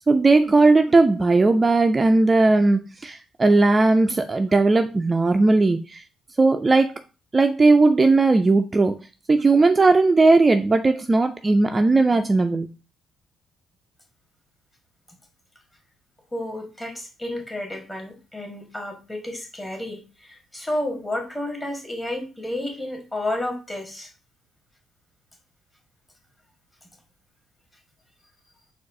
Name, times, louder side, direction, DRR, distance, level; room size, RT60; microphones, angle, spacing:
voice 1, 0.1-6.0 6.4-6.9 7.3-9.0 9.3-12.7, right 3 dB, 25° right, 6 dB, 0.3 m, -17 dB
voice 2, 16.3-24.1, left 1 dB, 15° left, 2 dB, 1.7 m, -31 dB
4.5 x 2.4 x 4.7 m, 0.33 s
cardioid pair, 90°, 0 cm